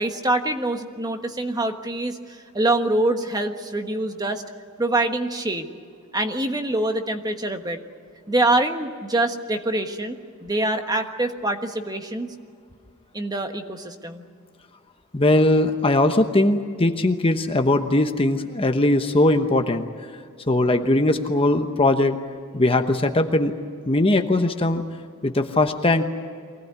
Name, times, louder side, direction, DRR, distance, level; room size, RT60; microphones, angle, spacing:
voice 1, 0.0-4.4 4.8-5.7 6.1-7.8 8.3-12.3 13.1-14.2, right 2 dB, 15° right, 6 dB, 1.4 m, -25 dB
voice 2, 15.1-19.9 20.5-22.2 22.5-23.5 23.9-24.8 25.2-26.0, left 2 dB, 25° left, 6 dB, 1.0 m, -20 dB
24.0 x 18.0 x 9.6 m, 2.1 s
head